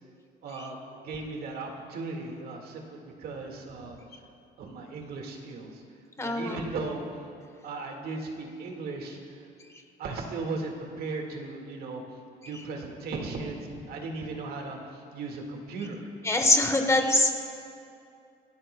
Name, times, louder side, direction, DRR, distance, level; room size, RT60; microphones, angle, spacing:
voice 1, 0.4-4.0 4.6-5.8 6.2-7.0 7.6-9.4 10.0-12.0 12.5-16.1, right 3 dB, 65° right, 2 dB, 1.8 m, -37 dB
voice 2, 6.2-6.6 16.2-17.4, left 2 dB, 15° left, 4 dB, 1.3 m, -23 dB
26.0 x 13.5 x 2.2 m, 2.5 s
cardioid pair, 110°, 17 cm